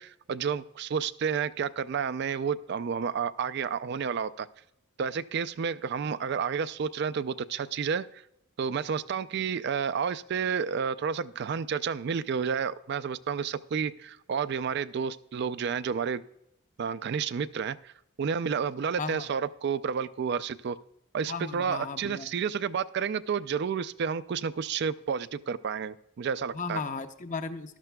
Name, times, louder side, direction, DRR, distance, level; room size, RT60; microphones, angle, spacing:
voice 1, 0.0-4.5 5.0-8.1 8.6-16.2 16.8-17.9 18.2-20.8 21.1-26.8, right 6 dB, 55° right, 15 dB, 0.3 m, -30 dB
voice 2, 21.3-22.3 26.5-27.8, left 4 dB, 35° left, 9 dB, 0.6 m, -35 dB
13.5 x 12.0 x 2.3 m, 0.81 s
head